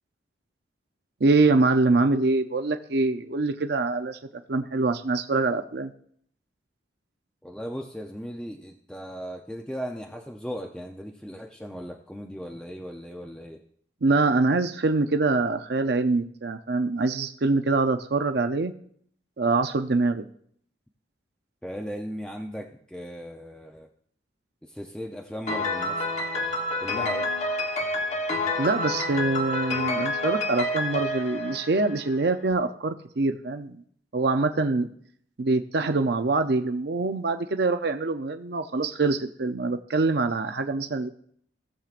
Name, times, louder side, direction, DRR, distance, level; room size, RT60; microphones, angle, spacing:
voice 1, 1.2-4.2 4.5-5.9 14.0-18.7 19.4-20.3 28.6-33.8 34.1-34.9 35.4-41.1, right 3 dB, 55° right, 7 dB, 0.5 m, -24 dB
voice 2, 7.4-13.6 21.6-23.9 24.6-26.1 26.8-27.3, equal, 5° left, 1 dB, 0.5 m, -37 dB
Piano, 25.5-32.3, left 1 dB, 35° left, 1.1 m, -28 dB
18.0 x 7.3 x 2.5 m, 0.63 s
head